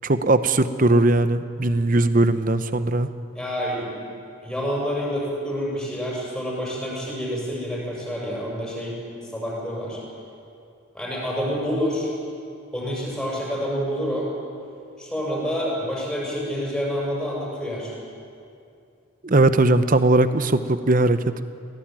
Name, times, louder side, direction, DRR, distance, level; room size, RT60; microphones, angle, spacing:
voice 1, 0.0-3.1 19.2-21.5, right 2 dB, 40° right, 12 dB, 0.8 m, -19 dB
voice 2, 3.3-3.9 4.4-9.0 9.3-10.0 10.9-12.1 12.7-14.3 15.0-17.9, equal, ahead, -5 dB, 7.0 m, -28 dB
22.5 x 17.5 x 9.1 m, 2.5 s
head